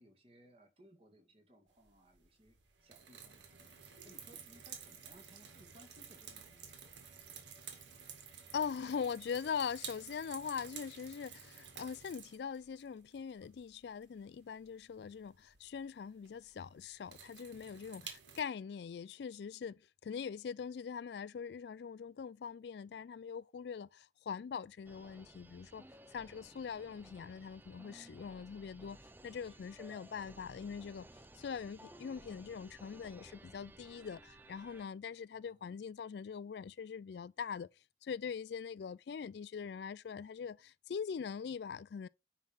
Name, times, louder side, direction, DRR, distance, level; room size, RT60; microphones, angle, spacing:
voice 1, 0.0-6.8 29.4-29.9 35.3-35.7, equal, 30° right, 2.2 m, -63 dB
sound 1, 1.8-18.4, right 7 dB, 90° right, 1.9 m, -52 dB
voice 2, 8.5-25.9 26.1-29.0 29.2-31.1 31.4-37.7 38.0-42.1, left 6 dB, 70° left, 0.3 m, -42 dB
sound 2, 24.8-34.9, right 1 dB, 10° right, 0.5 m, -57 dB
9.9 x 3.6 x 5.6 m
head